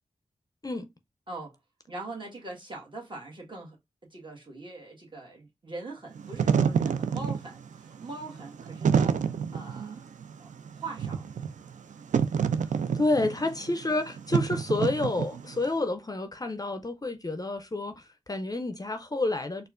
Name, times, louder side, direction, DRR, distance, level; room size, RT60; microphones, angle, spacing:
voice 1, 1.9-3.8 4.1-10.0 10.4-10.5 10.8-11.2 13.6-13.7, right 2 dB, 40° right, 1.5 m, -42 dB
Wind / Fire, 6.1-15.7, right 7 dB, 80° right, 0.4 m, -28 dB
voice 2, 12.7-19.7, left 2 dB, 30° left, 0.5 m, -29 dB
4.2 x 2.3 x 2.4 m
cardioid pair, 55°, 13 cm